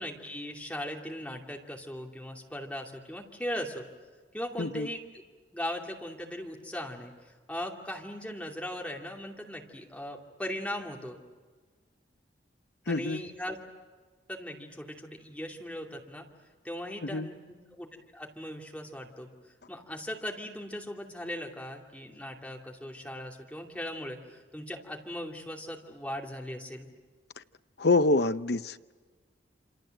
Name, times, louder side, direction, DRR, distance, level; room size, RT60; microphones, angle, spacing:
voice 1, 0.0-3.8 4.3-5.0 5.5-11.2 12.9-13.6 14.3-16.3 16.6-17.4 17.7-17.9 18.1-19.3 19.7-26.9, equal, 5° left, 0 dB, 2.6 m, -38 dB
voice 2, 4.6-4.9 12.9-13.2 17.0-17.3 27.4-27.5 27.8-28.9, left 3 dB, 55° left, 12 dB, 0.8 m, -27 dB
27.5 x 27.0 x 7.8 m, 1.4 s
head